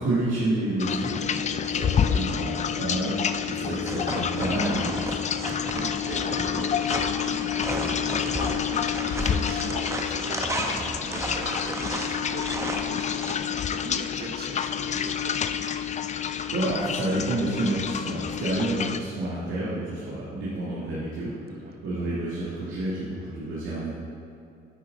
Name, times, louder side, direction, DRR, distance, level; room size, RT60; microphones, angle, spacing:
voice 1, 0.0-5.2 16.5-23.9, right 1 dB, 90° right, -8 dB, 1.9 m, -29 dB
sound 1, 0.8-19.0, left 8 dB, 35° left, 0.4 m, -29 dB
voice 2, 1.1-1.5 5.7-15.3 21.5-21.9, right 4 dB, 50° right, 4 dB, 0.9 m, -40 dB
sound 2, 3.9-13.3, right 1 dB, 15° right, 0.9 m, -33 dB
9.2 x 6.4 x 3.9 m, 2.5 s
cardioid pair, 90°, 20 cm